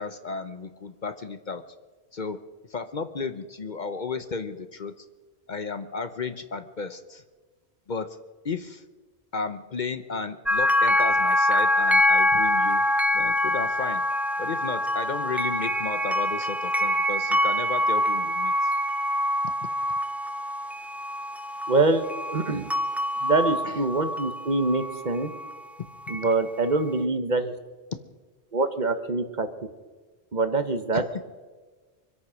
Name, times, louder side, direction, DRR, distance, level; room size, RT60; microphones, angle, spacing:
voice 1, 0.0-1.6 2.1-2.4 2.7-5.1 5.5-7.2 7.9-8.2 8.4-8.8 9.3-12.8 13.1-14.0 14.4-18.7 23.6-23.8 30.9-31.0, left 4 dB, 50° left, 10 dB, 0.8 m, -33 dB
sound 1, 10.5-25.6 26.1-26.4, left 1 dB, ahead, 0.5 m, -25 dB
voice 2, 21.7-22.0 22.3-22.7 23.2-25.3 26.1-27.5 28.5-29.5 30.3-31.0, right 3 dB, 45° right, 9 dB, 1.1 m, -24 dB
24.5 x 8.4 x 6.2 m, 1.3 s
omnidirectional pair, 1.1 m